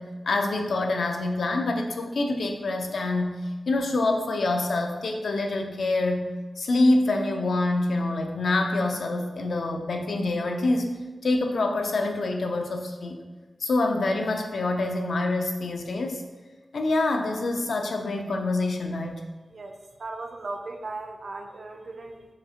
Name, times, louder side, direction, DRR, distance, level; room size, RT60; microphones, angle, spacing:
voice 1, 0.0-3.4 3.7-6.3 6.6-11.0 11.2-13.1 13.6-16.2 16.7-19.2, left 2 dB, 70° left, 3 dB, 0.4 m, -26 dB
voice 2, 19.5-22.3, right 2 dB, 50° right, 4 dB, 0.4 m, -37 dB
5.7 x 2.4 x 2.8 m, 1.2 s
wide cardioid pair, 155°, 0 cm